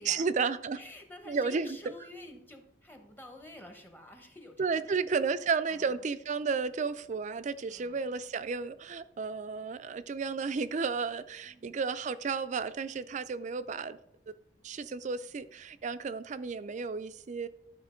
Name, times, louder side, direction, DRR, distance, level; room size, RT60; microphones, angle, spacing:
voice 1, 0.1-0.8 1.3-1.8 4.6-14.0 14.6-17.5, right 5 dB, 40° right, 14 dB, 0.4 m, -32 dB
voice 2, 0.7-6.1 7.7-8.2 11.4-11.7, left 1 dB, 10° left, 5 dB, 0.8 m, -50 dB
12.0 x 4.3 x 3.7 m, 0.74 s
head